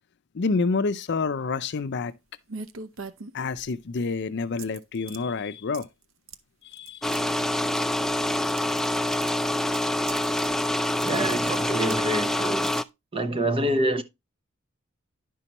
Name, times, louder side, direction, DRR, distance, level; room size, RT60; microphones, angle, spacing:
voice 1, 0.3-2.1 3.3-5.9 6.6-7.1 8.4-8.5, left 4 dB, 60° left, 0.5 m, -28 dB
sound 1, 2.5-3.8 4.6-5.2 5.7-6.0 6.3-6.4 6.7-7.2 7.8-8.9 9.1-10.5 10.9-12.0 12.6-12.8, right 5 dB, 80° right, 0.7 m, -41 dB
sound 2, 7.0-12.8, left 1 dB, ahead, 0.4 m, -26 dB
voice 2, 11.0-12.8 13.1-14.0, right 1 dB, 30° right, 0.9 m, -26 dB
10.5 x 5.6 x 3.0 m
head